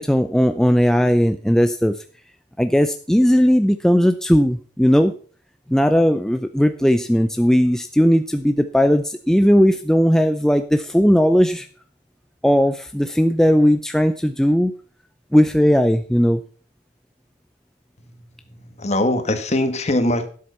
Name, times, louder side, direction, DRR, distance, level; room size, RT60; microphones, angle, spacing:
voice 1, 0.0-2.0 2.6-5.1 5.7-11.7 12.4-14.7 15.3-16.4, equal, 5° left, 8 dB, 0.5 m, -17 dB
voice 2, 18.5-20.3, left 1 dB, 40° left, 8 dB, 1.6 m, -21 dB
12.5 x 7.7 x 5.7 m, 0.43 s
head